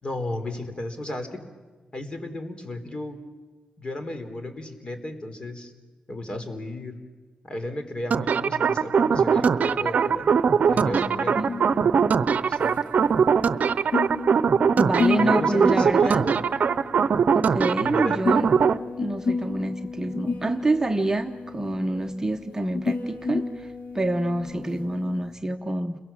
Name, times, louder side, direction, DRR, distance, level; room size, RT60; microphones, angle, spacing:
voice 1, 0.0-1.4 1.9-3.2 3.8-5.7 6.1-7.0 7.4-10.3 10.7-11.4 12.3-12.8 15.2-16.4 17.7-18.3, left 1 dB, 35° left, 7 dB, 3.7 m, -34 dB
sound 1, 8.1-18.8, right 6 dB, 65° right, 0.7 m, -21 dB
sound 2, 9.3-25.3, left 4 dB, 65° left, 3.8 m, -32 dB
voice 2, 14.8-16.3 17.3-18.5 19.0-26.0, right 2 dB, 20° right, 4 dB, 1.0 m, -27 dB
30.0 x 22.5 x 7.4 m, 1.4 s
cardioid pair, 90°, 3 cm